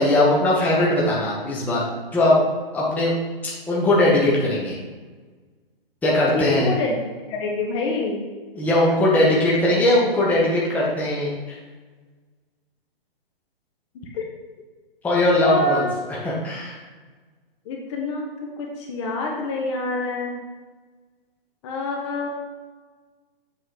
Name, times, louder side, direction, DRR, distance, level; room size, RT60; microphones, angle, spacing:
voice 1, 0.0-2.4 2.7-3.1 3.7-4.8 6.0-6.7 8.5-11.6 15.0-15.8 16.2-16.8, left 1 dB, 5° left, -6 dB, 1.0 m, -20 dB
voice 2, 6.3-6.9 7.3-8.3 14.1-14.2 15.4-15.9 17.6-18.3 18.6-20.4 21.6-22.3, left 2 dB, 30° left, -1 dB, 1.0 m, -26 dB
7.5 x 3.9 x 4.9 m, 1.4 s
hypercardioid pair, 150°, 30 cm